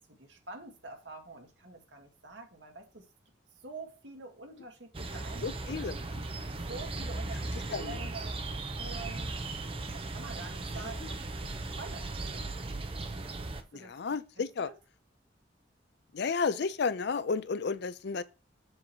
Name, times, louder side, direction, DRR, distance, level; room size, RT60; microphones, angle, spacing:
voice 1, 0.1-3.0 3.6-5.9 6.7-9.3 9.9-12.5 13.5-14.0 14.4-14.7, right 3 dB, 70° right, 1.6 m, -47 dB
sound 1, 4.9-13.6, right 2 dB, 30° right, 0.7 m, -37 dB
voice 2, 5.4-6.2 7.7-8.0 10.8-10.9 13.7-14.7 16.1-18.2, left 5 dB, 60° left, 0.5 m, -32 dB
7.6 x 3.0 x 5.5 m
head